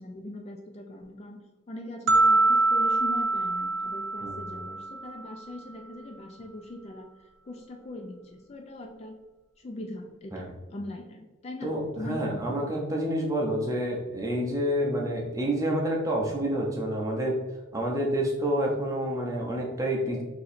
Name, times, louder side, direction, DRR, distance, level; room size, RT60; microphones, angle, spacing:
voice 1, 0.0-1.4 1.7-7.1 7.5-9.2 9.6-12.6, left 1 dB, 30° left, 3 dB, 0.3 m, -41 dB
sound 1, 2.1-5.2, right 2 dB, 70° right, 0.4 m, -24 dB
voice 2, 11.6-17.4 17.7-20.2, equal, 15° right, -1 dB, 0.6 m, -28 dB
2.9 x 2.7 x 4.1 m, 1.2 s
head